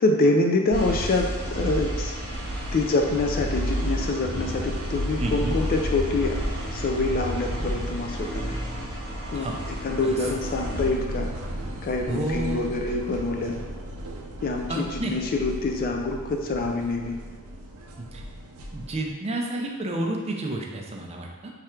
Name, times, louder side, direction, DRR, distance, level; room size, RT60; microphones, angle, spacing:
voice 1, 0.0-2.1 2.7-6.4 6.7-8.6 9.3-9.5 9.8-11.3 11.8-13.5 14.4-17.2, left 2 dB, 40° left, 2 dB, 0.3 m, -25 dB
sound 1, 0.7-10.9, equal, 50° right, 0.9 m, -31 dB
sound 2, 2.3-19.1, right 1 dB, 85° right, 0.6 m, -37 dB
voice 2, 5.2-5.6 9.3-9.6 10.0-10.2 12.1-12.6 14.7-15.1 18.0-18.2 18.7-21.5, right 1 dB, 30° right, 1 dB, 0.4 m, -30 dB
3.3 x 2.4 x 4.3 m, 1.3 s
head